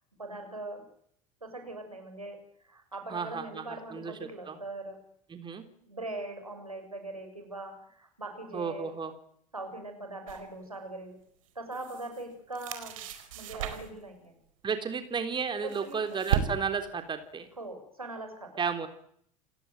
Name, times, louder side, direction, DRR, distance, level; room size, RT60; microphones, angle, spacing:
voice 1, 0.2-0.8 1.4-5.0 5.8-8.9 9.5-11.2 11.5-13.0 13.3-14.4 15.6-16.3 17.6-18.6, right 2 dB, 90° right, 5 dB, 6.7 m, -41 dB
voice 2, 3.1-4.6 5.3-5.6 8.5-9.1 14.6-17.5 18.6-18.9, right 6 dB, 25° right, 8 dB, 3.8 m, -33 dB
sound 1, 10.3-10.5 11.4-12.2 12.5-14.1 15.2-16.9, right 9 dB, 70° right, 4.6 m, -34 dB
29.5 x 17.0 x 9.4 m, 0.68 s
figure-of-eight pair, 70°, 18 cm